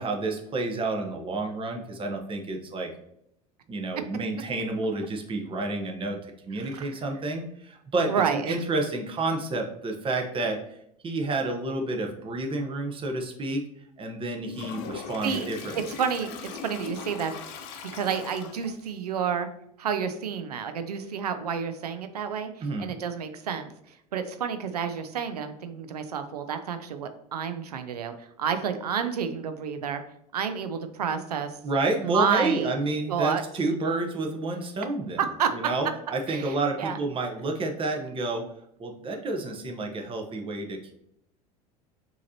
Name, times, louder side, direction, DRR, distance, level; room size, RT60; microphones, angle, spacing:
voice 1, 0.0-2.9 3.7-10.8 11.0-13.6 14.0-15.8 22.6-22.9 31.6-35.2 35.5-38.4 38.8-40.9, right 2 dB, 25° right, 3 dB, 0.9 m, -30 dB
voice 2, 6.6-6.9 8.1-8.6 15.2-15.5 15.7-17.3 17.8-19.5 19.8-30.0 30.3-31.5 32.0-32.7 33.1-33.4 35.2-35.5 36.3-37.0, right 7 dB, 85° right, 9 dB, 0.4 m, -30 dB
Toilet flush, 14.5-18.9, left 6 dB, 60° left, 0.7 m, -40 dB
6.2 x 2.8 x 2.8 m, 0.75 s
hypercardioid pair, 75°, 20 cm